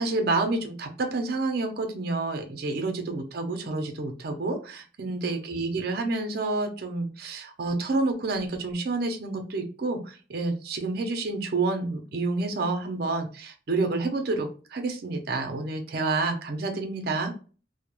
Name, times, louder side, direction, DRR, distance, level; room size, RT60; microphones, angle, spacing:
voice 1, 0.0-17.3, right 3 dB, 55° right, 4 dB, 0.5 m, -29 dB
2.3 x 2.0 x 2.9 m, 0.36 s
head